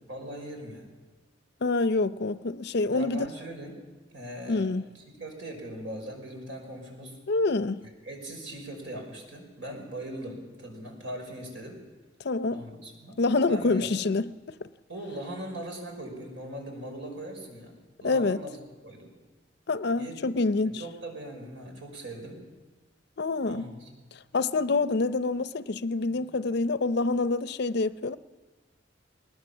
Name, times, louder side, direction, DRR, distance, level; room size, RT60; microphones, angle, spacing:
voice 1, 0.1-0.9 2.9-3.7 4.1-4.7 5.2-7.2 7.8-11.8 12.5-13.2 13.5-14.2 14.9-18.6 18.8-19.1 20.0-20.4 20.6-22.4 23.5-23.9, right 1 dB, 80° right, 5.6 m, -40 dB
voice 2, 1.6-3.3 4.5-4.8 7.3-7.8 12.2-12.6 13.2-14.3 18.0-18.4 19.7-20.8 23.2-23.7 24.3-28.2, left 3 dB, 60° left, 0.6 m, -26 dB
20.5 x 19.5 x 7.2 m
head